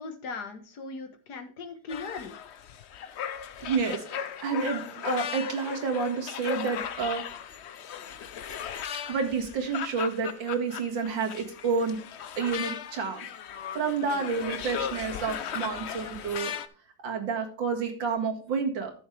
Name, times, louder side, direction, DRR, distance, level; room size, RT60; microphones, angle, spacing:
voice 1, 0.0-2.3 14.0-14.2, left 4 dB, 60° left, 8 dB, 1.8 m, -39 dB
sound 1, 1.9-16.7, left 8 dB, 90° left, 0.5 m, -37 dB
voice 2, 3.6-7.2 9.0-12.0 12.4-13.3 13.7-16.5 17.0-18.9, right 5 dB, 90° right, 3 dB, 2.6 m, -29 dB
13.5 x 6.4 x 3.3 m, 0.40 s
omnidirectional pair, 2.0 m